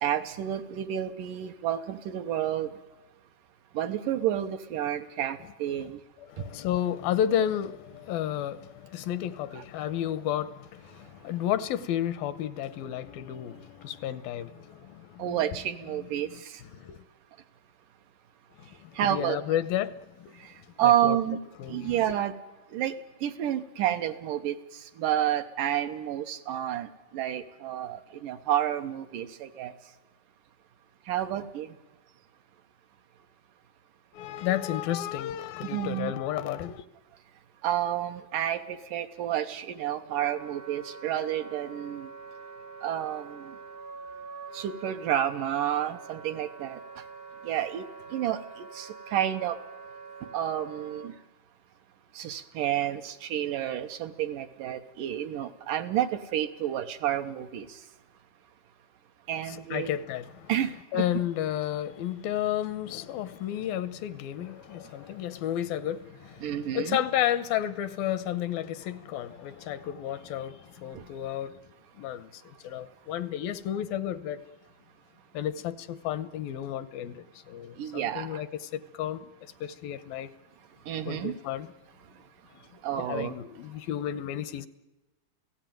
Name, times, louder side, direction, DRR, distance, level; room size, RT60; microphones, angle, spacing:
voice 1, 0.0-2.7 3.7-6.0 15.2-16.6 19.0-19.4 20.8-21.4 21.7-22.3 22.7-23.0 23.2-24.6 25.0-26.9 27.1-29.7 31.1-31.7 35.6-36.1 37.6-42.1 42.8-43.6 44.5-46.8 47.4-48.4 48.7-49.6 50.3-51.1 52.2-57.7 59.3-59.9 60.5-61.0 66.4-67.0 70.9-71.0 77.8-78.4 80.9-81.3 82.8-83.3, right 11 dB, 70° right, 2.4 m, -30 dB
voice 2, 6.2-15.4 16.0-17.0 18.6-19.9 20.2-20.4 20.8-21.2 21.6-22.2 34.1-36.9 59.5-60.5 60.9-71.6 71.9-74.4 75.3-80.3 81.1-81.7 83.0-84.7, left 11 dB, 80° left, 2.6 m, -32 dB
Wind instrument woodwind instrument, 39.6-51.1, right 5 dB, 50° right, 0.6 m, -45 dB
27.0 x 17.0 x 9.3 m
omnidirectional pair, 4.2 m